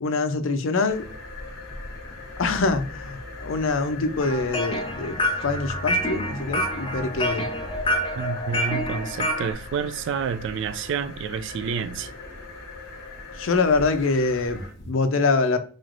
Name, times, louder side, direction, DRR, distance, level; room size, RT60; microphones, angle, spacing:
voice 1, 0.0-1.1 2.4-7.5 13.4-15.6, left 3 dB, 75° left, 0.5 m, -24 dB
sound 1, 0.9-14.9, left 2 dB, 55° left, 1.0 m, -39 dB
sound 2, 4.2-9.5, equal, 25° left, 0.7 m, -27 dB
voice 2, 8.2-12.1, right 6 dB, 65° right, 0.3 m, -29 dB
4.0 x 3.1 x 2.5 m
head